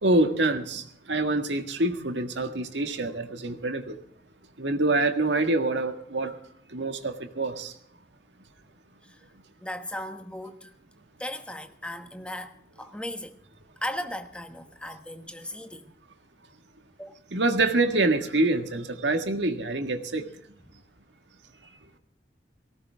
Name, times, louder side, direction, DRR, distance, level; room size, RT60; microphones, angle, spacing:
voice 1, 0.0-3.9 4.6-6.3 6.7-7.7 17.3-20.2, right 2 dB, 90° right, 1.7 m, -26 dB
voice 2, 9.0-9.3 9.6-10.7 11.2-13.4 13.8-15.9 17.0-17.1, left 1 dB, 5° left, 1.2 m, -37 dB
19.0 x 17.5 x 3.5 m
head